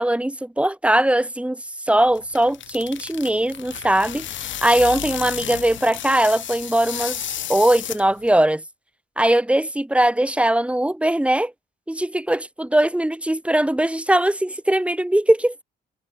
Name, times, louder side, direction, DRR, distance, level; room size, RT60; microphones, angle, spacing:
voice 1, 0.0-1.6 1.9-7.2 7.5-8.6 9.2-11.5 11.9-15.6, right 1 dB, 5° right, 3.9 m, -20 dB
sound 1, 2.0-8.4, left 11 dB, 70° left, 5.6 m, -32 dB
cardioid pair, 90°, 20 cm